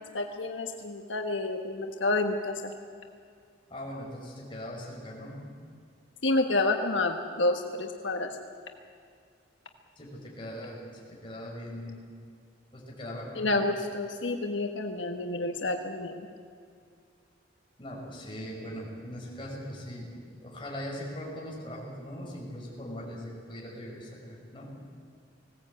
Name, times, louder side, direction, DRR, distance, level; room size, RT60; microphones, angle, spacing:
voice 1, 0.1-2.7 6.2-8.4 13.4-16.3, left 2 dB, 85° left, 4 dB, 1.3 m, -29 dB
voice 2, 3.7-5.4 10.0-12.1 12.7-13.5 17.8-24.7, equal, 25° left, -3 dB, 5.5 m, -40 dB
20.0 x 17.0 x 8.7 m, 2.2 s
head